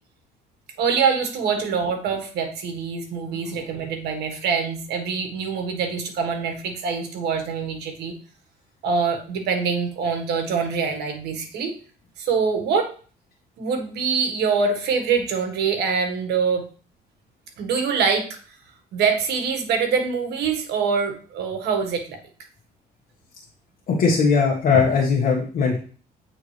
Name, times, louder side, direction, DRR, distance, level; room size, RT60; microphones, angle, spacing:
voice 1, 0.8-8.1 8.8-11.7 12.2-12.9 13.6-16.6 17.6-18.4 18.9-22.2, right 5 dB, 75° right, 5 dB, 1.4 m, -24 dB
voice 2, 3.2-3.5 23.9-25.8, left 5 dB, 55° left, -3 dB, 1.4 m, -20 dB
8.4 x 3.7 x 3.2 m, 0.40 s
cardioid pair, 110°, 17 cm